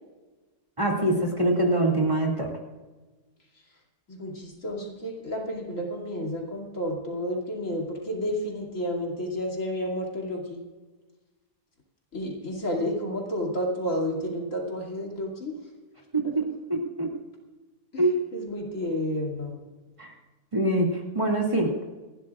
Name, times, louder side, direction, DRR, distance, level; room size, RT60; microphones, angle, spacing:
voice 1, 0.8-2.5 16.1-16.4 16.7-17.1 18.0-18.1 20.0-20.1 20.5-21.9, right 1 dB, 20° right, -1 dB, 2.4 m, -24 dB
voice 2, 4.1-10.6 12.1-15.6 17.9-18.0 18.3-19.6, equal, 60° left, -1 dB, 3.0 m, -31 dB
29.0 x 12.0 x 2.4 m, 1.3 s
omnidirectional pair, 1.5 m